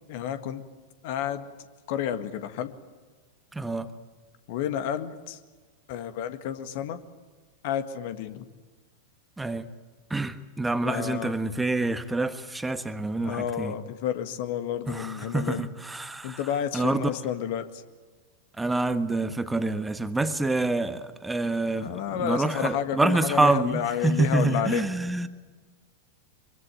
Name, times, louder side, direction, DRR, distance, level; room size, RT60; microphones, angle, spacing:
voice 1, 0.1-0.6 1.0-1.4 1.9-2.7 4.5-5.4 5.9-7.0 7.6-8.4 10.8-11.3 13.2-15.7 16.2-17.7 21.4-24.8, left 10 dB, 50° left, 1.8 m, -30 dB
voice 2, 3.5-3.9 9.4-9.7 10.1-13.7 14.9-17.1 18.6-25.3, right 2 dB, 5° right, 1.4 m, -27 dB
24.0 x 23.5 x 9.1 m
figure-of-eight pair, 90°, 0 cm